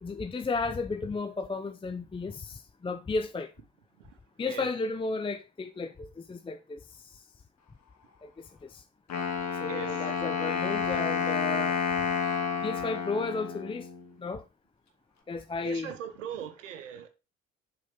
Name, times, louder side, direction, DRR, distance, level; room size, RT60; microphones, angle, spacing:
voice 1, 0.0-3.5 4.4-6.8 8.2-8.3 8.7-8.8 9.6-11.8 12.6-13.9 14.2-14.4 15.3-15.9, left 3 dB, 15° left, 0.6 m, -33 dB
Wind instrument woodwind instrument, 9.1-14.1, left 6 dB, 45° left, 1.6 m, -30 dB
voice 2, 9.7-10.1 15.6-17.1, right 8 dB, 80° right, 0.9 m, -40 dB
7.2 x 4.1 x 5.8 m
figure-of-eight pair, 50°, 37 cm